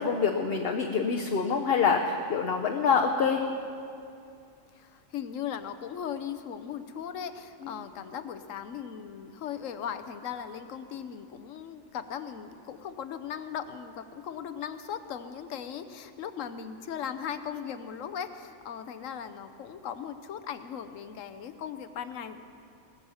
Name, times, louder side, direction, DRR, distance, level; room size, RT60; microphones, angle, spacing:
voice 1, 0.0-3.4, left 5 dB, 55° left, 2 dB, 0.9 m, -26 dB
voice 2, 4.7-22.4, left 8 dB, 80° left, 10 dB, 1.1 m, -38 dB
20.5 x 7.1 x 7.0 m, 2.5 s
omnidirectional pair, 1.3 m